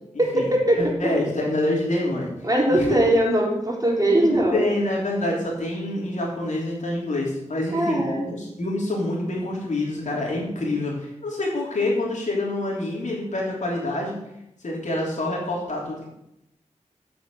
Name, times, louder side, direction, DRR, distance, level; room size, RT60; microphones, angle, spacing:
voice 1, 0.2-0.9 2.4-4.7 7.7-8.3, right 1 dB, 30° right, -2 dB, 3.4 m, -21 dB
voice 2, 0.7-2.3 2.7-3.0 4.3-14.2 14.6-16.1, left 1 dB, 75° left, -3 dB, 3.6 m, -26 dB
7.8 x 6.0 x 7.9 m, 0.85 s
cardioid pair, 45°, 13 cm